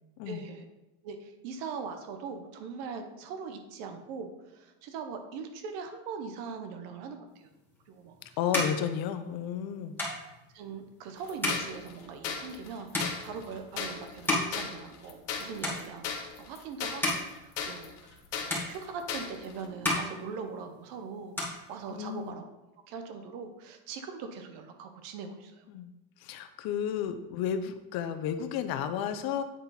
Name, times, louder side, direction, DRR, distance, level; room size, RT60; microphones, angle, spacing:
voice 1, 0.3-0.7 1.0-7.5 7.9-8.4 10.1-10.2 10.5-22.4 22.9-25.6, right 5 dB, 65° right, 6 dB, 1.3 m, -41 dB
sound 1, 7.7-15.3 15.6-16.3 16.7-18.2 18.5-19.4 19.7-20.9 21.2-22.3, left 1 dB, 5° left, 2.2 m, -35 dB
voice 2, 8.4-9.9 21.9-22.3 25.7-25.9 26.2-29.4, left 8 dB, 55° left, 10 dB, 0.8 m, -32 dB
sound 2, 11.2-19.7, left 6 dB, 70° left, 1.3 m, -38 dB
8.9 x 4.1 x 4.0 m, 1.0 s
supercardioid pair, 115°, 45 cm